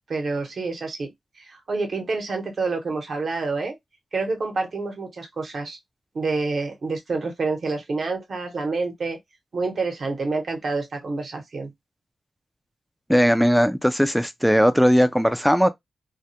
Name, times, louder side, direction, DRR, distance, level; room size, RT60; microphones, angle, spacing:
voice 1, 0.1-1.1 1.4-3.7 4.1-5.8 6.1-9.2 9.5-11.7, right 3 dB, 55° right, 0.8 m, -28 dB
voice 2, 13.1-15.7, equal, ahead, 0.3 m, -18 dB
2.2 x 2.1 x 2.7 m
wide cardioid pair, 100°, 0 cm